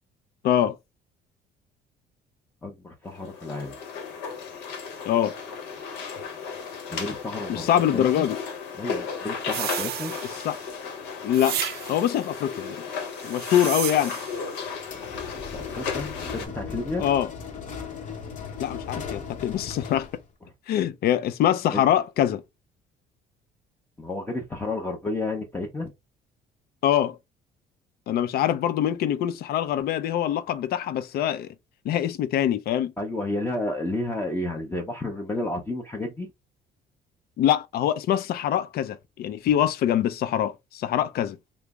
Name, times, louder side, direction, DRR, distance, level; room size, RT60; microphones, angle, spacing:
voice 1, 0.4-0.8 5.1-5.3 7.5-8.4 10.4-10.6 11.2-11.6 11.9-12.8 13.2-14.1 17.0-17.3 18.6-20.1 20.7-22.4 26.8-27.2 28.1-31.5 31.8-32.9 37.4-41.4, left 11 dB, 65° left, 0.5 m, -24 dB
voice 2, 2.6-3.8 6.9-8.2 8.8-10.1 15.5-17.0 21.7-21.8 24.0-25.9 33.0-36.3, left 2 dB, 10° left, 0.6 m, -31 dB
sound 1, 3.1-16.5, left 6 dB, 90° left, 0.9 m, -35 dB
sound 2, 9.5-10.7 11.3-12.2 13.2-14.4, right 11 dB, 70° right, 0.5 m, -33 dB
sound 3, 14.8-20.3, left 5 dB, 50° left, 1.0 m, -37 dB
3.2 x 2.0 x 3.5 m
cardioid pair, 110°, 17 cm